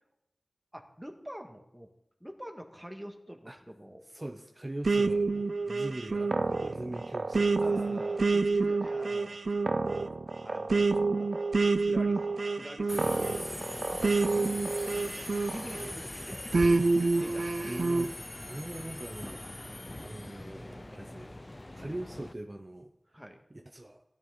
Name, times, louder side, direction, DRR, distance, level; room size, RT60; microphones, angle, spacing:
voice 1, 0.7-1.9 2.2-4.0 6.5-6.8 7.6-9.4 10.4-11.3 11.8-17.8 19.6-19.8 23.1-23.4, equal, 5° right, 3 dB, 1.9 m, -45 dB
voice 2, 4.1-8.0 17.4-21.4 21.7-23.2 23.5-24.0, right 1 dB, 30° right, 3 dB, 1.0 m, -42 dB
sound 1, 4.8-15.9 16.5-18.1, right 3 dB, 70° right, 0.5 m, -28 dB
Subway metro underground, 12.9-22.3, left 1 dB, 30° left, 0.6 m, -42 dB
16.0 x 12.5 x 4.0 m, 0.84 s
wide cardioid pair, 65°, 0 cm